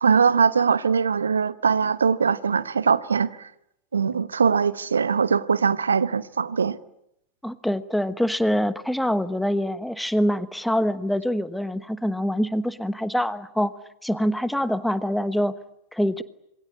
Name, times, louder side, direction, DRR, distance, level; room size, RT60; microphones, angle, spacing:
voice 1, 0.0-3.5 3.9-6.8, right 6 dB, 70° right, 1.0 m, -21 dB
voice 2, 7.4-13.7 14.0-15.5 15.9-16.2, equal, ahead, 1.1 m, -25 dB
26.5 x 21.5 x 9.8 m
figure-of-eight pair, 90°, 0 cm